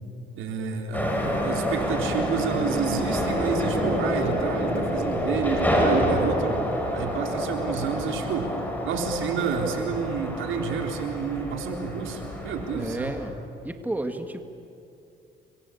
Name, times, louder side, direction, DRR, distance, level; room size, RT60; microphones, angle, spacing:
voice 1, 0.4-6.5 6.9-8.5 8.8-13.1, right 5 dB, 80° right, 3 dB, 4.0 m, -29 dB
sound 1, 0.9-13.3, equal, 10° left, 6.2 m, -28 dB
voice 2, 12.7-13.4 13.6-14.4, right 1 dB, 10° right, 7 dB, 1.9 m, -31 dB
29.5 x 23.5 x 8.6 m, 2.6 s
cardioid pair, 90°, 20 cm